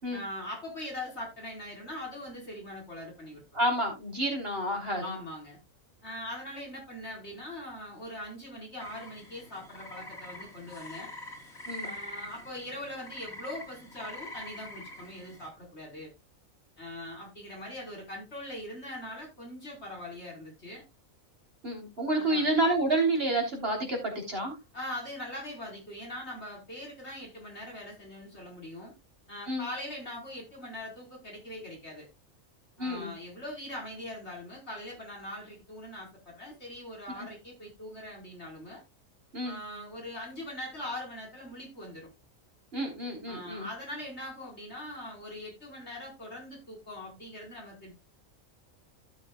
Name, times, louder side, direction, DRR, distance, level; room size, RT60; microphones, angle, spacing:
voice 1, 0.1-3.4 5.0-5.6 6.0-11.1 11.8-16.1 16.8-20.8 22.1-22.5 24.7-28.9 29.3-32.1 32.8-38.8 39.4-42.1 43.3-47.9, left 1 dB, 50° left, 5.0 m, -41 dB
voice 2, 3.5-5.0 11.7-11.9 21.6-24.5 29.5-29.7 32.8-33.1 39.3-39.6 42.7-43.7, right 1 dB, 45° right, 3.8 m, -29 dB
sound 1, 8.8-15.5, left 1 dB, 90° left, 4.2 m, -44 dB
16.0 x 6.9 x 2.3 m
omnidirectional pair, 1.4 m